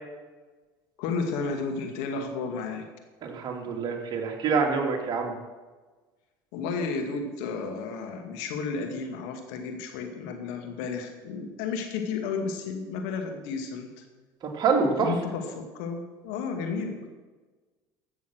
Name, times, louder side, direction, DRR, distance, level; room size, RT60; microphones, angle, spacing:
voice 1, 1.0-2.9 6.5-14.0 14.8-17.1, left 4 dB, 75° left, 5 dB, 2.1 m, -32 dB
voice 2, 3.2-5.3 14.4-15.1, right 5 dB, 45° right, 2 dB, 2.6 m, -26 dB
14.5 x 7.2 x 6.3 m, 1.3 s
supercardioid pair, 90°, 10 cm